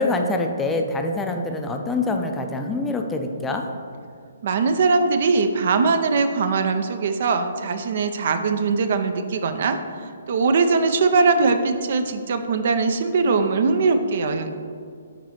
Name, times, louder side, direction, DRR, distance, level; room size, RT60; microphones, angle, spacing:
voice 1, 0.0-3.6, left 2 dB, 10° left, 4 dB, 0.4 m, -25 dB
voice 2, 4.4-14.5, right 4 dB, 50° right, 8 dB, 0.4 m, -21 dB
5.9 x 4.1 x 4.5 m, 2.2 s
figure-of-eight pair, 130°, 0 cm